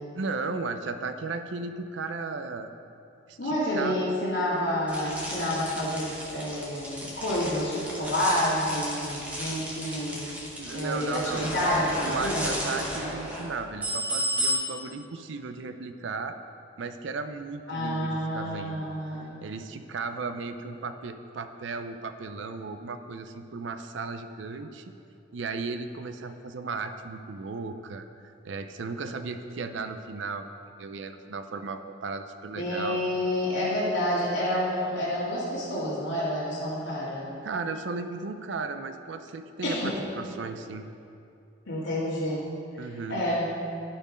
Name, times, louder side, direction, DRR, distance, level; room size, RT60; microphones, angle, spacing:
voice 1, 0.1-2.7 3.3-4.1 10.6-11.5 11.8-16.4 16.8-18.8 19.4-24.8 25.3-30.5 30.8-33.0 37.4-40.9 42.8-43.2, right 4 dB, 75° right, 9 dB, 0.5 m, -35 dB
voice 2, 3.4-10.2 10.7-12.5 17.7-19.4 32.6-37.2 39.6-40.0 41.7-42.4 42.7-43.5, left 1 dB, 85° left, -10 dB, 2.1 m, -29 dB
sound 1, 4.9-14.5, equal, 5° right, 1.2 m, -33 dB
12.0 x 4.5 x 5.1 m, 2.7 s
head